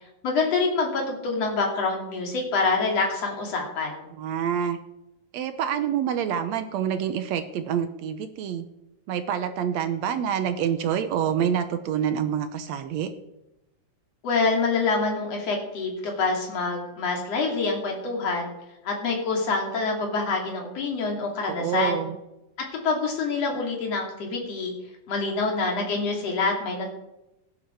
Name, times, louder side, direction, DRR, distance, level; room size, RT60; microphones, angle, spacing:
voice 1, 0.2-4.1 14.2-18.5 18.8-22.0 22.8-24.7 25.1-26.9, left 4 dB, 50° left, 1 dB, 3.9 m, -26 dB
voice 2, 4.2-4.8 5.3-8.7 9.1-13.1 21.5-22.2, right 8 dB, 70° right, 10 dB, 1.8 m, -27 dB
16.0 x 11.0 x 4.8 m, 0.89 s
omnidirectional pair, 3.7 m